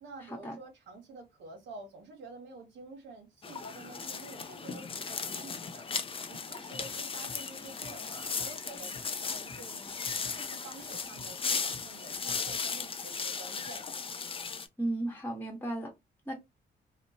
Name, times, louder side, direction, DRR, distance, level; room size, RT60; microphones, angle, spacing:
voice 1, 0.0-5.9 6.3-13.9, right 3 dB, 85° right, 0.7 m, -49 dB
sound 1, 3.4-14.7, left 5 dB, 30° left, 0.4 m, -37 dB
sound 2, 6.7-12.6, left 3 dB, 80° left, 0.8 m, -53 dB
voice 2, 14.8-15.9 16.3-16.4, right 1 dB, 10° left, 0.9 m, -34 dB
2.8 x 2.0 x 2.6 m
cardioid pair, 90°, 19 cm